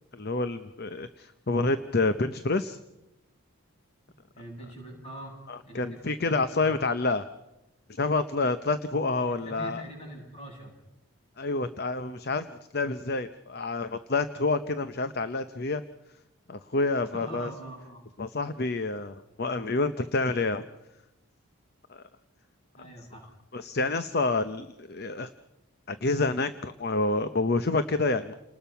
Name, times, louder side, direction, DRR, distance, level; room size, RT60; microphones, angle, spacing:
voice 1, 0.1-2.8 5.5-7.2 7.9-9.8 11.4-15.8 16.5-17.5 18.2-20.6 21.9-22.0 23.5-25.3 25.9-28.3, left 3 dB, 45° left, 11 dB, 0.8 m, -28 dB
voice 2, 4.3-5.3 5.6-6.8 9.2-10.7 17.1-18.0 22.7-23.3, right 1 dB, 30° left, 0 dB, 7.8 m, -43 dB
29.0 x 20.0 x 5.8 m, 0.90 s
head